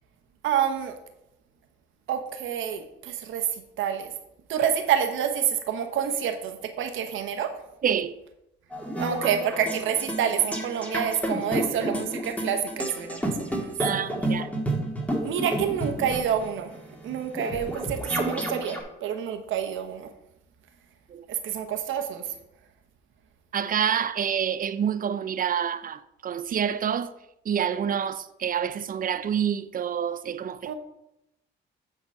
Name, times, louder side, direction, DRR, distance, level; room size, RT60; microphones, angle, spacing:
voice 1, 0.4-1.0 2.1-4.1 4.5-7.5 8.9-13.7 15.2-16.7 17.0-20.1 21.3-22.3 30.6-30.7, right 8 dB, 80° right, 1.1 m, -28 dB
voice 2, 7.8-8.1 13.8-14.5 21.1-21.3 23.5-27.1 27.5-30.7, right 8 dB, 45° right, 0.5 m, -27 dB
sound 1, 8.7-18.8, right 1 dB, 5° left, 1.7 m, -30 dB
8.6 x 4.0 x 5.5 m
cardioid pair, 90°, 20 cm